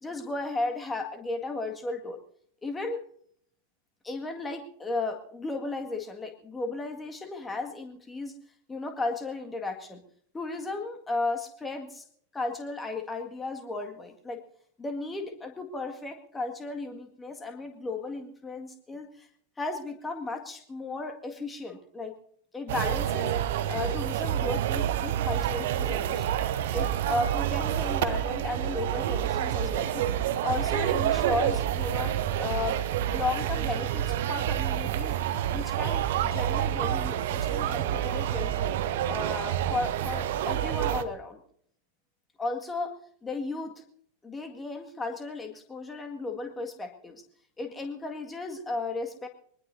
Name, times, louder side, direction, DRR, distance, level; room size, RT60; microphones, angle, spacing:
voice 1, 0.0-2.2 2.6-3.0 4.0-8.3 8.7-10.0 10.3-12.1 12.3-14.4 14.8-19.3 19.6-22.2 22.5-23.3 23.7-26.4 26.7-30.1 30.4-32.8 33.1-35.2 35.5-38.7 39.1-41.4 42.4-42.9 43.2-43.8 44.2-47.2 47.6-49.3, left 3 dB, 15° left, 4 dB, 2.0 m, -35 dB
sound 1, 22.7-41.0, right 11 dB, 55° right, 0.9 m, -28 dB
23.0 x 20.0 x 2.7 m, 0.63 s
figure-of-eight pair, 90°, 0 cm